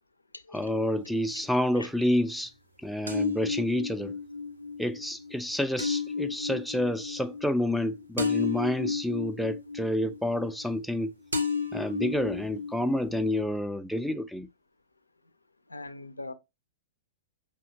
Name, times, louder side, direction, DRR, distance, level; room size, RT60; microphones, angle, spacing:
voice 1, 0.5-2.5 2.8-4.2 4.8-11.1 11.7-14.5, left 1 dB, ahead, 0.3 m, -29 dB
sound 1, 0.5-1.4 3.1-11.0 11.3-13.4, left 4 dB, 80° right, 0.9 m, -33 dB
voice 2, 15.7-16.3, left 2 dB, 85° left, 0.4 m, -41 dB
5.5 x 2.8 x 2.7 m
figure-of-eight pair, 105°, 0 cm